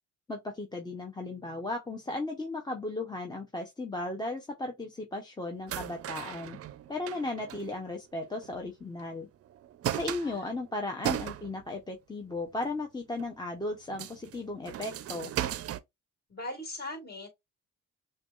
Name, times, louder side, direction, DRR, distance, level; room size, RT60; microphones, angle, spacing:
voice 1, 0.3-6.6 6.9-9.3 9.9-15.3, left 2 dB, 15° left, 0.7 m, -36 dB
sound 1, 5.7-8.7 9.0-9.1 9.5-11.8 12.3-12.7 13.2-13.3 13.7-15.8, right 12 dB, 50° right, 0.4 m, -37 dB
voice 2, 9.8-10.5 16.3-17.3, left 1 dB, 30° left, 1.9 m, -40 dB
5.9 x 2.3 x 2.4 m
cardioid pair, 90°, 30 cm